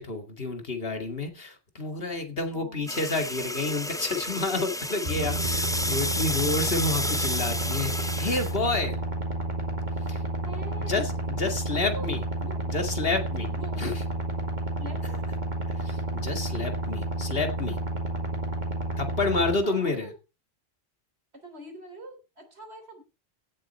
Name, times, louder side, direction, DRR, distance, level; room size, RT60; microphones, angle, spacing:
voice 1, 0.0-9.0 10.1-10.2 10.8-12.2 12.7-13.5 13.8-13.9 15.7-17.8 19.0-20.1, left 3 dB, 65° left, 6 dB, 2.3 m, -29 dB
voice 2, 2.5-3.1 10.5-11.2 11.7-12.1 12.4-12.6 13.5-13.8 14.8-15.3 19.6-20.1 21.3-23.0, right 1 dB, 90° right, 5 dB, 3.9 m, -44 dB
sound 1, 2.9-8.6, left 1 dB, 5° left, 0.4 m, -31 dB
sound 2, 5.0-19.5, right 1 dB, 45° right, 2.3 m, -31 dB
16.5 x 7.7 x 4.2 m, 0.29 s
omnidirectional pair, 1.1 m